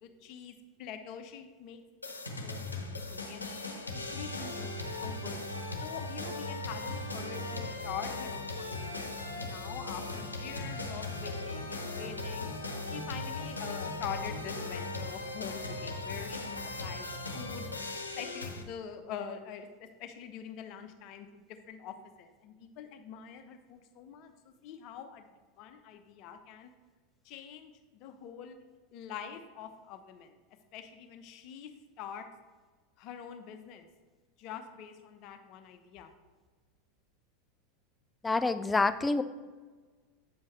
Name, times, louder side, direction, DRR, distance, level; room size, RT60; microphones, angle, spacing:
voice 1, 0.0-2.1 2.4-4.7 5.0-5.4 5.8-12.5 12.9-17.1 17.3-17.7 18.2-24.3 24.6-25.2 25.6-26.7 27.2-28.6 28.9-30.3 30.7-31.7 32.0-32.3 33.0-33.9 34.4-36.1, left 8 dB, 45° left, 7 dB, 0.9 m, -45 dB
sound 1, 2.0-18.6, left 2 dB, 85° left, 0.9 m, -38 dB
voice 2, 38.2-39.2, left 3 dB, 15° left, 12 dB, 0.4 m, -27 dB
8.6 x 7.4 x 3.1 m, 1.4 s
figure-of-eight pair, 85°, 0 cm